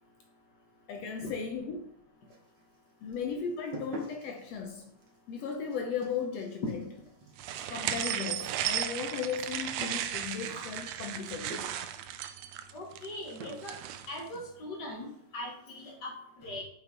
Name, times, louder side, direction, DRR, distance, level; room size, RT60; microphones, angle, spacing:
voice 1, 0.9-1.8 3.0-4.9 5.3-7.0 7.7-11.6 14.3-14.4, left 6 dB, 75° left, 3 dB, 1.6 m, -36 dB
sound 1, 2.3-2.8 3.1-12.0 13.0-13.1 13.4-13.9 14.2-14.3 14.6-14.7 15.0-15.2 15.5-16.0, right 1 dB, 50° right, 1.5 m, -48 dB
sound 2, 7.4-14.2, right 11 dB, 85° right, 1.5 m, -35 dB
voice 2, 12.7-13.8 14.1-16.6, left 1 dB, 50° left, 0 dB, 1.3 m, -41 dB
5.7 x 5.5 x 4.6 m, 0.70 s
omnidirectional pair, 3.5 m